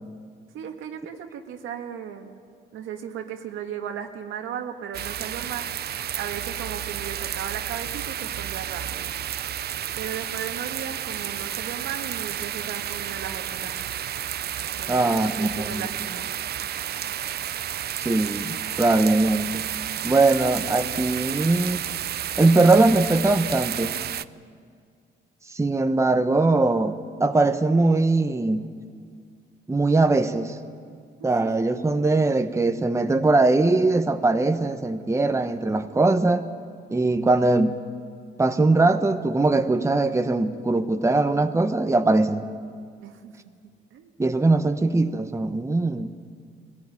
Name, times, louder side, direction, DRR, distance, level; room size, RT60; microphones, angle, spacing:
voice 1, 0.5-2.4 2.7-5.7 6.2-9.1 10.0-13.7 14.8-16.3 31.2-31.3 43.0-43.4 43.6-44.1, right 8 dB, 85° right, 4 dB, 1.8 m, -36 dB
sound 1, 4.9-24.3, right 10 dB, 55° right, 0.5 m, -31 dB
voice 2, 14.9-15.8 18.0-19.6 20.0-21.8 22.4-24.0 25.5-28.7 29.7-30.5 31.2-36.5 36.9-37.8 38.4-42.4 44.2-46.1, right 2 dB, 15° right, 7 dB, 1.1 m, -21 dB
21.5 x 15.5 x 9.8 m, 2.1 s
cardioid pair, 90°, 20 cm